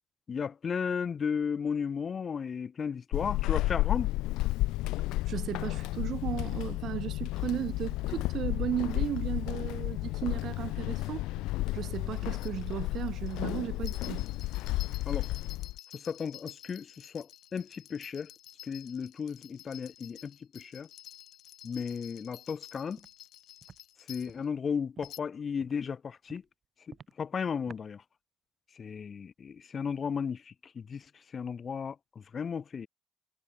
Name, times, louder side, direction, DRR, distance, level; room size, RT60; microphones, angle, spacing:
voice 1, 0.3-4.1 15.1-15.3 15.9-18.3 18.6-20.9 21.6-23.1 24.1-26.4 26.9-28.0 28.7-32.9, left 6 dB, 40° left, 1.0 m, -35 dB
Walk footsteps / Squeak, 3.1-15.8, left 19 dB, 90° left, 1.0 m, -32 dB
voice 2, 5.3-11.3 11.7-14.3, right 11 dB, 60° right, 0.7 m, -35 dB
sound 1, 12.2-24.4 25.0-25.2, left 13 dB, 70° left, 6.0 m, -51 dB
Walk footsteps, 23.0-23.1 23.6-23.8 24.3-24.4 25.0-25.1 25.6-25.8 26.3-26.4 26.9-27.1 27.7-27.8, right 6 dB, 40° right, 2.0 m, -51 dB
cardioid pair, 110°, 0 cm